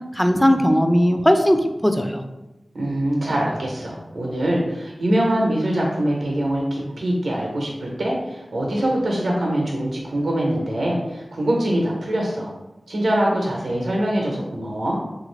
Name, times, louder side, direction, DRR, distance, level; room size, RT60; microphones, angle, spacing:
voice 1, 0.1-2.2, equal, 10° left, 6 dB, 0.3 m, -18 dB
voice 2, 2.7-12.5 12.9-15.0, right 1 dB, 85° right, -2 dB, 0.6 m, -23 dB
3.2 x 2.4 x 3.1 m, 1.0 s
wide cardioid pair, 55°, 0 cm